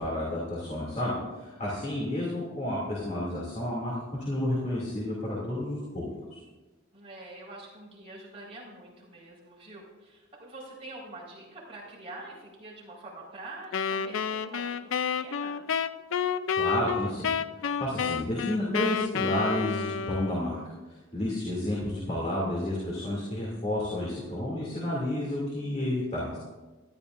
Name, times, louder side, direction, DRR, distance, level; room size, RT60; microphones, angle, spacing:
voice 1, 0.0-6.4 16.6-17.3 17.8-20.6 20.9-26.4, left 1 dB, 35° left, -5 dB, 2.6 m, -31 dB
voice 2, 6.9-14.8 15.2-15.6, right 2 dB, 30° right, -6 dB, 4.4 m, -45 dB
Wind instrument woodwind instrument, 13.7-20.6, left 6 dB, 70° left, 0.5 m, -30 dB
18.5 x 12.5 x 2.6 m, 1.2 s
head